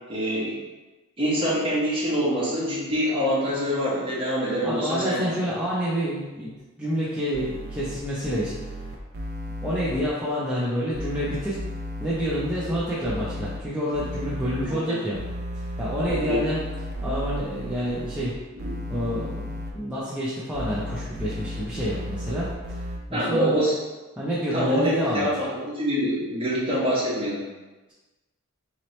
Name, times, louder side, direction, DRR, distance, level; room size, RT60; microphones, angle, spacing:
voice 1, 0.1-0.6 1.2-5.3 14.6-14.8 16.1-16.4 18.5-18.7 23.1-23.7 24.5-27.4, equal, 25° right, -7 dB, 1.2 m, -25 dB
voice 2, 4.6-6.5 6.8-8.6 9.6-11.6 12.0-15.2 15.5-16.6 17.0-18.4 18.9-22.8 23.1-23.6 24.2-25.3, equal, 5° right, -10 dB, 0.5 m, -28 dB
sound 1, 7.3-10.0 10.9-13.6 13.9-14.7 15.1-18.3 18.6-19.7 20.5-23.0, equal, 45° right, 0.6 m, -34 dB
4.0 x 3.0 x 3.1 m, 1.2 s
head